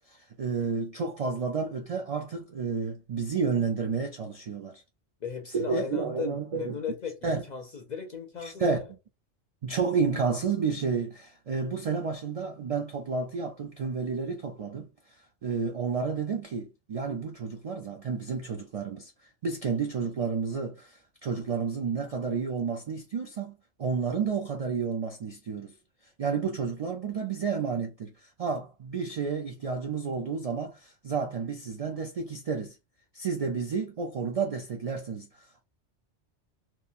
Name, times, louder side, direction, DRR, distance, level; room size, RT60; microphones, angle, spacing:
voice 1, 0.1-4.8 5.5-6.8 7.2-7.4 8.4-8.9 9.6-15.2 15.4-25.7 26.2-32.8 33.1-35.6, right 5 dB, 60° right, 0.3 m, -31 dB
voice 2, 5.2-8.8, left 6 dB, 55° left, 0.5 m, -37 dB
2.9 x 2.2 x 2.4 m
omnidirectional pair, 1.2 m